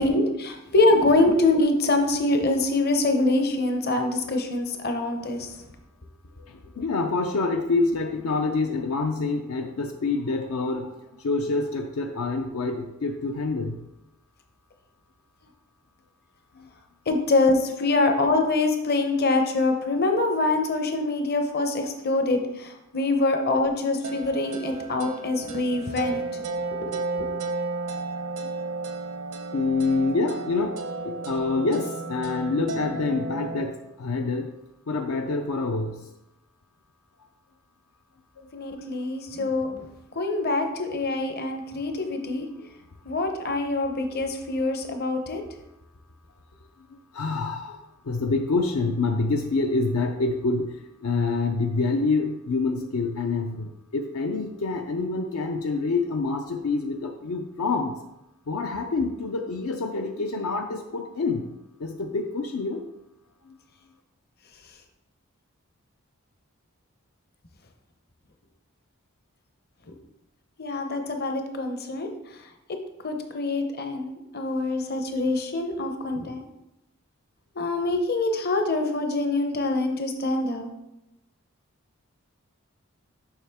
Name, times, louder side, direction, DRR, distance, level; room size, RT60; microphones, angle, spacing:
voice 1, 0.0-5.5 17.1-26.4 26.8-27.3 38.5-39.9 40.1-42.5 43.0-45.4 70.6-72.1 72.7-72.8 73.0-76.5 77.6-80.7, left 2 dB, 45° left, 5 dB, 0.8 m, -24 dB
voice 2, 6.5-13.8 16.6-16.7 25.4-25.6 29.5-30.8 31.0-34.5 34.9-36.1 38.4-38.5 42.6-42.7 47.1-50.7 51.0-57.9 58.5-61.5 61.8-62.8 63.5-63.6, left 3 dB, 70° left, 4 dB, 0.5 m, -27 dB
sound 1, 24.0-33.6, right 3 dB, 85° right, 0.8 m, -33 dB
7.2 x 5.7 x 3.5 m, 0.91 s
head